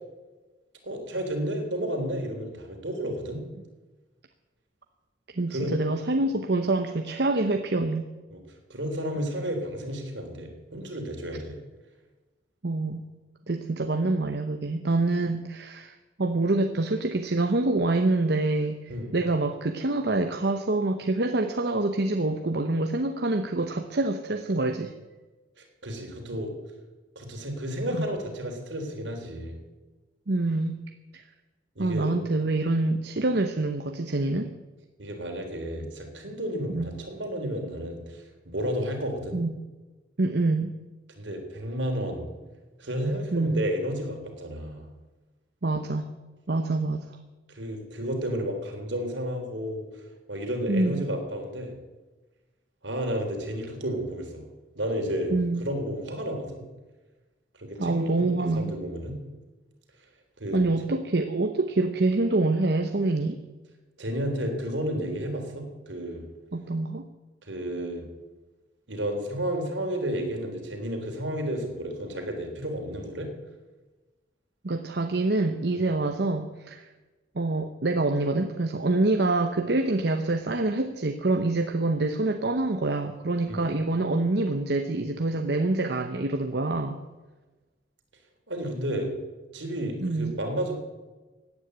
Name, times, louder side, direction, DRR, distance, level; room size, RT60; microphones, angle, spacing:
voice 1, 0.8-3.4 5.5-5.7 8.3-8.4 8.7-11.6 18.9-19.1 25.6-26.5 27.2-29.6 31.8-32.2 35.0-39.4 41.2-42.2 42.8-44.9 47.5-49.9 50.3-51.7 52.8-54.5 54.8-55.3 55.6-56.6 57.6-59.2 60.4-60.6 64.0-66.2 67.5-68.0 68.9-73.3 83.5-83.6 88.5-89.1 89.5-90.7, equal, 80° right, 3 dB, 3.5 m, -32 dB
voice 2, 5.3-8.1 12.6-13.0 13.5-24.9 27.9-28.1 30.3-30.8 31.1-31.2 31.8-34.5 36.7-36.9 39.3-39.5 40.2-40.7 43.3-43.6 45.6-46.0 46.5-47.1 50.7-51.0 55.3-55.6 57.8-58.7 60.5-63.4 66.5-67.0 74.6-76.9 77.3-87.0 90.0-90.4, right 2 dB, 60° right, 6 dB, 0.9 m, -26 dB
16.5 x 9.7 x 8.1 m, 1.2 s
head